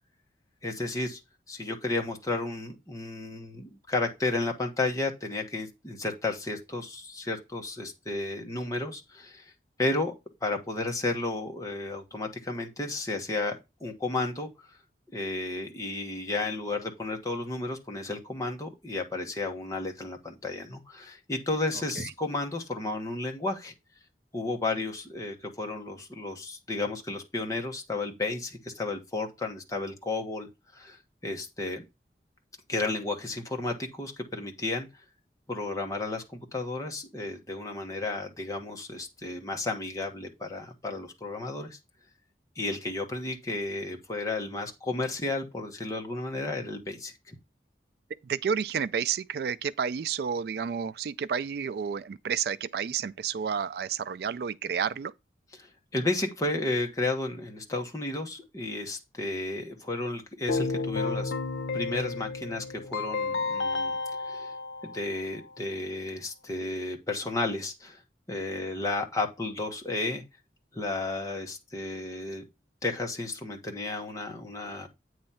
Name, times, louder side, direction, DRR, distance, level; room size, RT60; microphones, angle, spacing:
voice 1, 0.6-1.2 1.5-9.5 9.8-10.1 10.4-14.7 15.1-23.7 24.3-30.5 30.7-31.8 32.7-34.9 35.5-41.8 42.5-47.3 55.5-61.3 61.7-64.5 64.8-68.0 68.3-70.2 70.7-72.4 72.8-74.9, left 2 dB, 20° left, 1.3 m, -33 dB
voice 2, 48.2-55.1, right 7 dB, 60° right, 0.3 m, -30 dB
Keyboard (musical), 60.5-65.5, left 3 dB, 85° left, 0.7 m, -32 dB
8.8 x 3.1 x 5.6 m
head